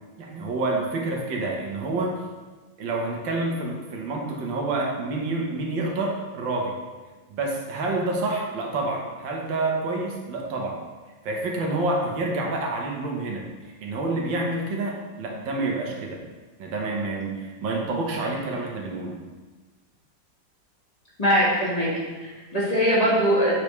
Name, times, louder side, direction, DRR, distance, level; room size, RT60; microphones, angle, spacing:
voice 1, 0.2-2.2 2.8-6.8 7.3-10.8 11.2-13.4 13.8-16.2 16.6-19.2, right 2 dB, 85° right, 0 dB, 1.7 m, -28 dB
voice 2, 21.2-23.5, equal, 20° left, -8 dB, 1.7 m, -22 dB
8.2 x 5.0 x 3.2 m, 1.3 s
omnidirectional pair, 2.0 m